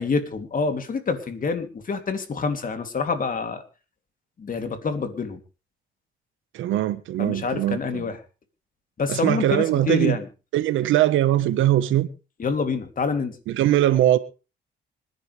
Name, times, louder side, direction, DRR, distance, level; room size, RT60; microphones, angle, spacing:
voice 1, 0.0-3.6 4.4-5.4 7.2-8.2 9.0-10.3 12.4-13.4, left 4 dB, 45° left, 3.0 m, -27 dB
voice 2, 6.5-8.1 9.1-10.2 10.5-12.1 13.5-14.2, right 13 dB, 85° right, 1.3 m, -21 dB
26.0 x 10.5 x 3.4 m
cardioid pair, 90°, 20 cm